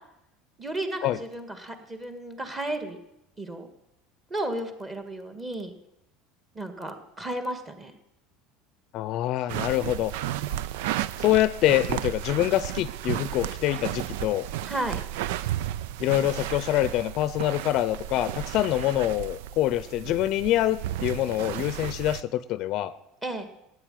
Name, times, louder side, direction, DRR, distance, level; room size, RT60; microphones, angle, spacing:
voice 1, 0.6-3.0 3.4-3.7 4.3-5.7 6.6-7.9 14.7-15.0 23.2-23.5, right 1 dB, 15° right, 7 dB, 1.8 m, -33 dB
voice 2, 8.9-10.1 11.2-14.5 16.0-22.9, left 14 dB, 45° left, 15 dB, 0.6 m, -25 dB
sound 1, 9.5-22.2, right 13 dB, 80° right, 0.5 m, -33 dB
15.5 x 9.7 x 9.2 m, 0.86 s
cardioid pair, 160°, 0 cm